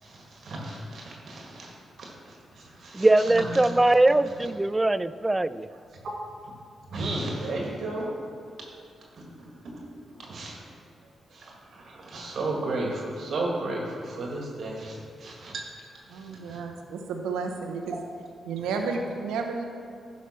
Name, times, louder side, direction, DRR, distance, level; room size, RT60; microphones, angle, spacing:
voice 1, 0.0-3.6 6.9-8.1 8.6-8.7 9.2-9.9 10.2-10.6 11.3-16.6, right 2 dB, 65° right, -1 dB, 1.6 m, -34 dB
voice 2, 2.9-5.7, right 2 dB, 20° right, 16 dB, 0.3 m, -21 dB
voice 3, 16.1-18.0 18.4-19.6, right 4 dB, 85° right, 3 dB, 0.8 m, -32 dB
10.0 x 5.2 x 5.6 m, 2.4 s
supercardioid pair, 45°, 0 cm